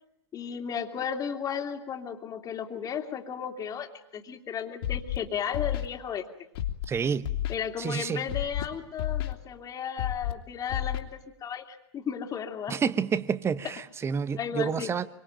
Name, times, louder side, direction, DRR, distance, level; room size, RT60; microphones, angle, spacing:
voice 1, 0.3-6.3 7.5-12.8 14.4-14.9, left 7 dB, 25° left, 5 dB, 2.7 m, -34 dB
Scratching (performance technique), 4.8-5.2 5.5-5.9 6.5-6.9 7.2-7.5 8.3-8.7 9.0-9.3 10.0-10.3 10.7-11.0, left 12 dB, 60° left, 2.9 m, -30 dB
voice 2, 6.9-7.3 7.8-8.2 12.7-15.1, right 6 dB, 15° right, 15 dB, 1.1 m, -29 dB
25.0 x 24.5 x 9.0 m, 0.79 s
hypercardioid pair, 115°, 15 cm